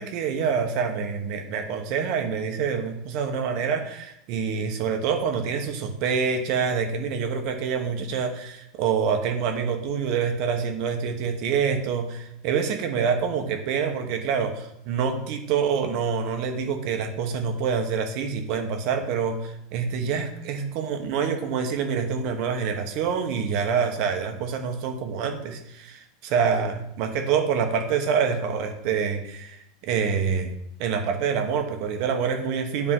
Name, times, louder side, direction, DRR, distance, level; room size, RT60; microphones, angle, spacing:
voice 1, 0.0-29.6 29.8-30.5 30.8-32.9, right 6 dB, 55° right, 5 dB, 1.1 m, -26 dB
9.7 x 3.6 x 3.7 m, 0.80 s
supercardioid pair, 135°, 0 cm